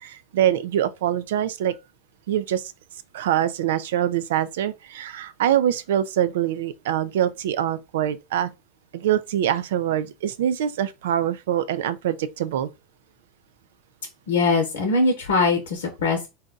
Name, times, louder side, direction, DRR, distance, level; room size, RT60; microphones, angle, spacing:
voice 1, 0.0-1.7 2.3-2.7 3.1-8.5 8.9-12.7, right 11 dB, 80° right, 0.4 m, -24 dB
voice 2, 14.3-16.3, left 3 dB, 80° left, 0.8 m, -21 dB
4.0 x 2.2 x 3.8 m
hypercardioid pair, 95°, 0 cm